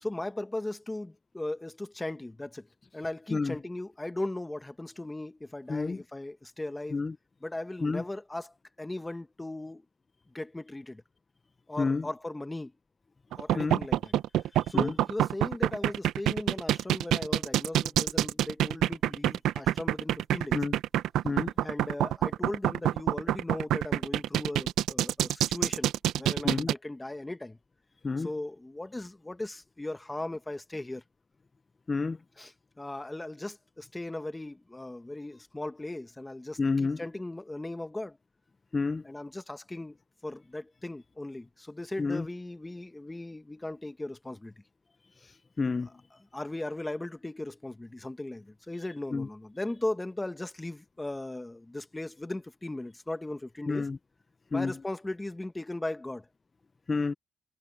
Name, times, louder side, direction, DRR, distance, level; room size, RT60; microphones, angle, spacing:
voice 1, 0.0-2.7 2.9-7.0 7.4-9.8 10.3-11.0 11.7-12.7 13.4-14.1 14.7-20.6 21.6-27.6 28.2-31.0 32.4-38.2 39.0-40.0 40.2-44.5 46.3-53.9 54.5-56.3, left 2 dB, 15° left, 1.3 m, -38 dB
voice 2, 11.8-12.1 13.5-13.8 14.7-15.0 20.5-20.7 21.2-21.5 26.4-26.7 28.0-28.3 31.9-32.2 36.6-37.0 38.7-39.1 42.0-42.3 45.6-45.9 49.1-49.3 53.7-54.0 54.5-54.8 56.9-57.1, left 4 dB, 30° left, 0.7 m, -29 dB
sound 1, 13.3-26.7, right 12 dB, 85° right, 0.7 m, -26 dB
cardioid pair, 90°, 0 cm